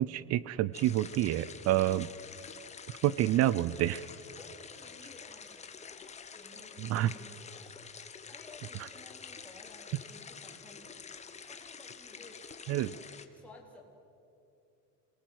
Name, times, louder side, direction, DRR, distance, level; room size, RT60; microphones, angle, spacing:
voice 1, 0.0-2.1 3.0-4.0 6.8-7.1 12.7-12.9, right 14 dB, 50° right, 19 dB, 0.5 m, -28 dB
sound 1, 0.7-13.3, left 6 dB, 20° left, 1.2 m, -48 dB
voice 2, 4.4-11.0 11.5-12.4 12.8-13.8, left 2 dB, 5° left, -2 dB, 3.8 m, -56 dB
27.0 x 19.0 x 7.9 m, 2.7 s
cardioid pair, 150°, 33 cm